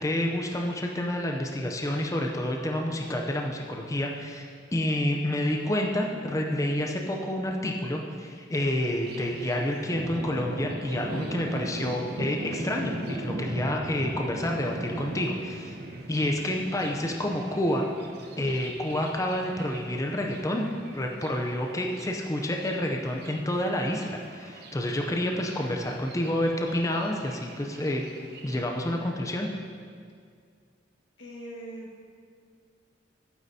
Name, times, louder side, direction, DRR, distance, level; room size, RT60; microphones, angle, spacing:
voice 1, 0.0-15.7 16.1-17.9 18.4-20.7 20.9-28.0 28.4-29.5, left 1 dB, 15° left, 1 dB, 0.5 m, -29 dB
Thunder, 9.0-28.6, right 1 dB, 55° right, 0.9 m, -39 dB
voice 2, 31.2-31.9, right 1 dB, 75° left, -3 dB, 1.6 m, -43 dB
11.5 x 9.2 x 2.8 m, 2.2 s
head